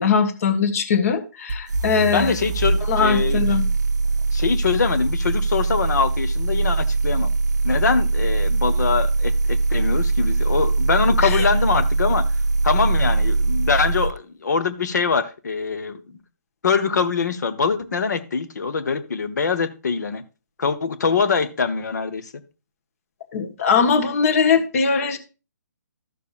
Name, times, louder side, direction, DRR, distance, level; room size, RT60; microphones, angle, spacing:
voice 1, 0.0-2.3 2.9-3.7 11.2-11.4 23.3-25.2, left 6 dB, 50° left, 1.4 m, -20 dB
sound 1, 1.5-14.2, right 3 dB, 65° right, 0.6 m, -22 dB
voice 2, 2.1-3.4 4.3-7.3 7.6-12.3 12.6-16.2 16.6-20.2 20.6-22.3, left 5 dB, 65° left, 1.1 m, -23 dB
13.5 x 6.7 x 2.5 m
figure-of-eight pair, 140°, 10 cm